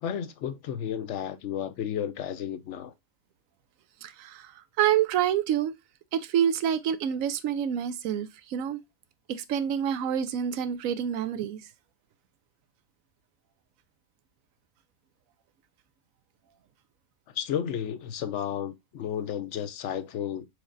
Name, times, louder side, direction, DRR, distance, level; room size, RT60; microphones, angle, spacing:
voice 1, 0.0-2.9 17.3-20.5, left 9 dB, 70° left, 0.8 m, -32 dB
voice 2, 4.0-5.7 6.1-8.8 9.3-11.6, right 9 dB, 85° right, 1.0 m, -27 dB
4.7 x 4.2 x 2.4 m
omnidirectional pair, 1.4 m